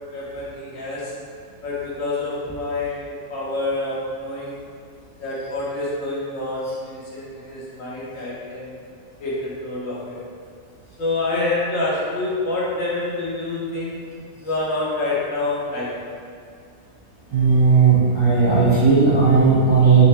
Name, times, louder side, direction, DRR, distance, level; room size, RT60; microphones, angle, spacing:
voice 1, 0.1-1.1 1.6-4.5 5.2-8.7 9.2-10.2 11.0-14.0 14.4-16.0, left 2 dB, 90° left, -7 dB, 1.4 m, -27 dB
voice 2, 17.3-20.1, right 5 dB, 25° right, -13 dB, 0.9 m, -15 dB
5.6 x 2.2 x 4.2 m, 2.2 s
omnidirectional pair, 1.4 m